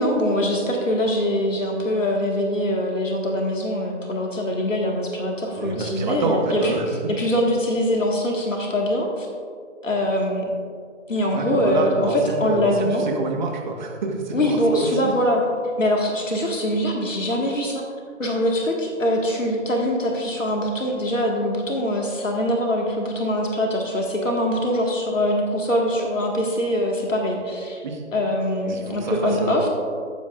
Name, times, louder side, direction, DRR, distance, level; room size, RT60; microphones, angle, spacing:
voice 1, 0.0-6.7 7.1-9.3 9.8-10.4 11.1-13.0 14.3-15.4 15.8-17.8 18.2-27.8 28.1-29.7, left 1 dB, 80° left, 0 dB, 1.9 m, -23 dB
voice 2, 5.6-6.8 11.3-14.9 27.8-28.0 28.7-29.7, right 3 dB, 35° right, 1 dB, 1.5 m, -27 dB
15.5 x 8.1 x 2.5 m, 2.1 s
figure-of-eight pair, 145°, 38 cm